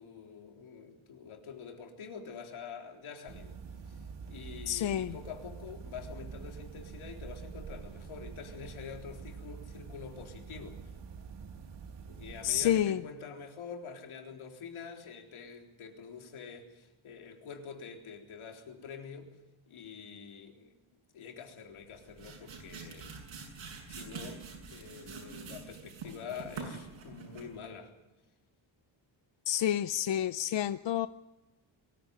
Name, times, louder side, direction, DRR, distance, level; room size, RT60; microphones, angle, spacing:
voice 1, 0.0-3.6 3.9-4.0 4.3-10.9 12.1-19.3 19.7-20.7 21.1-23.1 23.9-24.4 24.7-27.9, left 6 dB, 90° left, 2 dB, 3.8 m, -46 dB
sound 1, 3.3-12.9, right 6 dB, 60° right, 2.0 m, -46 dB
voice 2, 4.7-5.1 12.4-13.0 29.5-31.1, left 11 dB, 65° left, 12 dB, 0.7 m, -29 dB
sound 2, 21.8-27.6, right 4 dB, 75° right, 7.2 m, -45 dB
23.0 x 15.0 x 9.0 m, 1.0 s
wide cardioid pair, 140°, 48 cm